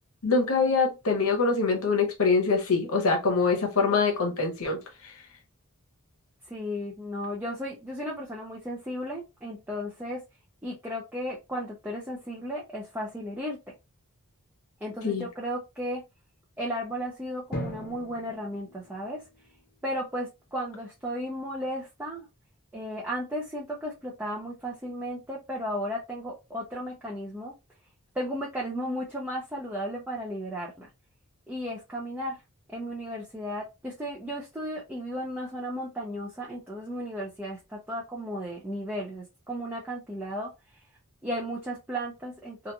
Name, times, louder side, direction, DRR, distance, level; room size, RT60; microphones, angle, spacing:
voice 1, 0.2-4.8 5.0-5.1 15.0-15.2, left 4 dB, 75° left, 0.9 m, -24 dB
voice 2, 6.5-10.2 10.6-13.6 14.8-16.0 16.6-19.2 19.8-22.3 22.7-27.5 28.1-30.9 31.5-32.4 32.7-40.5 41.2-42.7, equal, 10° right, 0.4 m, -34 dB
Drum, 17.5-20.0, equal, 45° left, 0.7 m, -39 dB
2.9 x 2.5 x 2.2 m
head